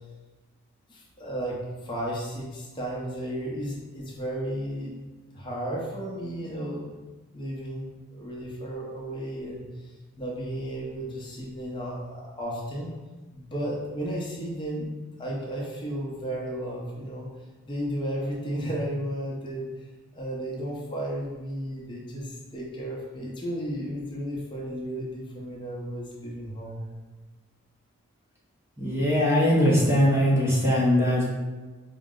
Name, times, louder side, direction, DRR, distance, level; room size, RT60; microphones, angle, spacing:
voice 1, 0.9-5.0 5.3-7.0 7.3-12.9 13.3-17.3 17.6-19.8 20.1-26.9, right 1 dB, 20° left, -4 dB, 0.7 m, -34 dB
voice 2, 28.8-31.3, equal, 10° right, -5 dB, 0.7 m, -21 dB
5.3 x 2.1 x 3.6 m, 1.2 s
head